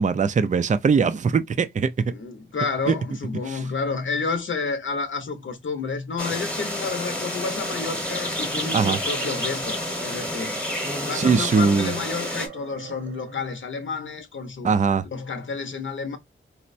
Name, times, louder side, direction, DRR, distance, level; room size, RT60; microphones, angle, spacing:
voice 1, 0.0-2.1 2.9-3.0 3.5-3.6 8.7-9.0 11.1-11.9 14.6-15.1, right 5 dB, 35° right, 0.4 m, -21 dB
voice 2, 2.1-10.6 11.0-14.8 15.0-16.2, left 4 dB, 70° left, 0.7 m, -30 dB
sound 1, 6.2-12.5, left 1 dB, 5° left, 1.0 m, -29 dB
sound 2, 8.4-13.7, right 5 dB, 90° right, 1.2 m, -42 dB
4.2 x 2.1 x 2.5 m
wide cardioid pair, 125°, 21 cm